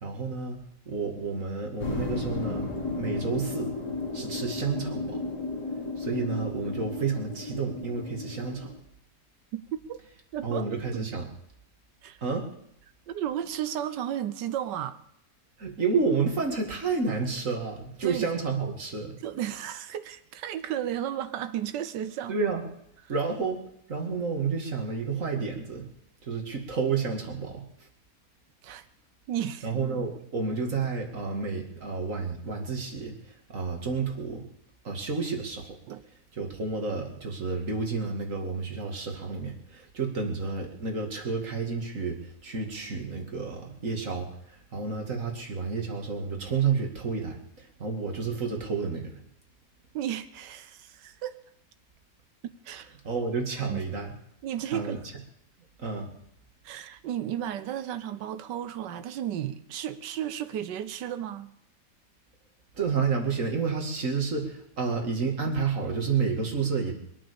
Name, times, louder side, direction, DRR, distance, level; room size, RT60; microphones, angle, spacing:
voice 1, 0.0-0.6 0.9-2.7 3.0-3.7 4.1-5.2 6.0-8.7 10.4-11.3 12.2-12.5 15.6-19.1 22.3-22.6 23.1-23.6 23.9-25.9 26.2-27.6 29.6-33.1 33.5-34.4 34.8-35.8 36.4-49.2 53.0-54.1 54.7-55.0 55.8-56.1 62.8-67.0, right 5 dB, 50° right, 2 dB, 2.6 m, -30 dB
sound 1, 1.8-8.8, left 3 dB, 75° left, 3.1 m, -34 dB
voice 2, 10.3-10.7 10.9-11.2 12.0-12.2 13.1-15.0 18.0-18.3 19.2-22.4 28.6-28.8 29.3-29.8 35.9-36.0 49.9-51.3 52.6-52.9 53.6-53.8 54.4-55.0 56.6-61.5, right 10 dB, 85° right, 11 dB, 1.4 m, -33 dB
23.0 x 8.8 x 6.9 m, 0.74 s
omnidirectional pair, 1.8 m